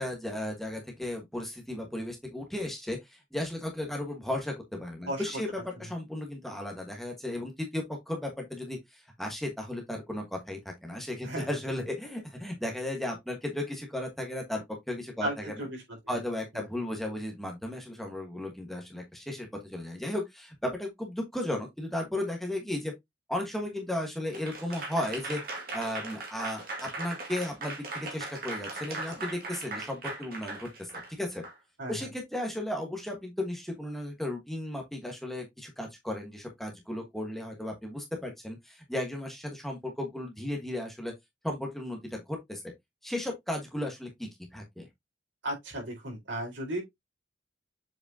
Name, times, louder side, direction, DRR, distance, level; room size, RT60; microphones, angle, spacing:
voice 1, 0.0-15.5 16.1-22.9 23.3-25.4 25.7-31.4 31.9-41.1 41.4-42.7 43.0-44.8, left 1 dB, ahead, 1.4 m, -35 dB
voice 2, 15.2-16.2 16.5-16.6 31.8-31.9 45.4-46.8, right 1 dB, 80° right, 4.3 m, -35 dB
Applause / Crowd, 24.3-31.5, right 3 dB, 50° right, 2.1 m, -39 dB
7.3 x 5.1 x 2.8 m
head